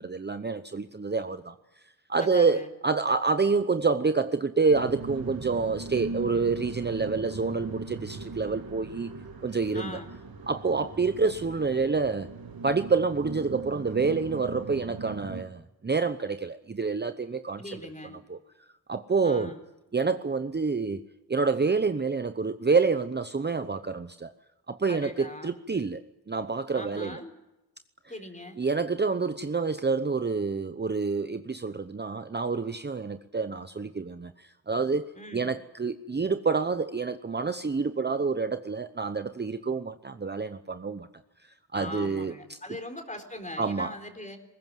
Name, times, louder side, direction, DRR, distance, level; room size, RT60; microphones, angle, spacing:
voice 1, 0.0-1.5 2.1-9.1 9.4-10.0 10.5-12.3 12.6-17.8 18.3-18.4 18.9-19.5 19.9-21.0 21.3-24.3 24.7-26.0 26.3-27.2 28.6-41.1 41.4-42.6 43.6-43.9, right 4 dB, 25° right, 10 dB, 0.8 m, -28 dB
voice 2, 2.2-2.7 9.7-10.1 17.6-18.2 19.2-19.6 24.9-25.5 26.7-27.3 28.1-28.6 35.2-35.5 41.7-44.4, left 1 dB, 20° left, 5 dB, 4.2 m, -40 dB
sound 1, 4.7-15.4, right 3 dB, 60° right, 2.3 m, -39 dB
21.0 x 18.5 x 9.2 m, 0.98 s
wide cardioid pair, 80°, 39 cm